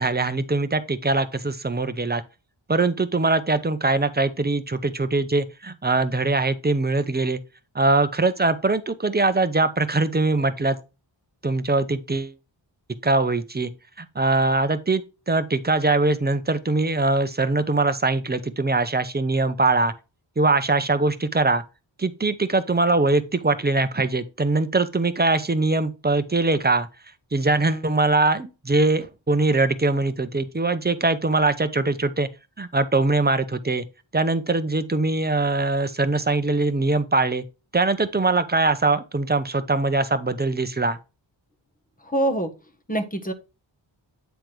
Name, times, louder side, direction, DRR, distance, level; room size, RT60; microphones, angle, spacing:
voice 1, 0.0-2.2 2.7-7.4 7.7-10.8 11.4-12.3 13.0-13.7 14.0-15.0 15.3-19.9 20.4-21.6 22.0-26.9 27.3-32.3 32.6-33.8 34.1-37.4 37.7-41.0, right 3 dB, 20° right, 0.7 m, -22 dB
voice 2, 42.0-42.5 42.9-43.3, right 1 dB, 20° left, 1.3 m, -24 dB
9.1 x 3.5 x 4.6 m
wide cardioid pair, 95°, 46 cm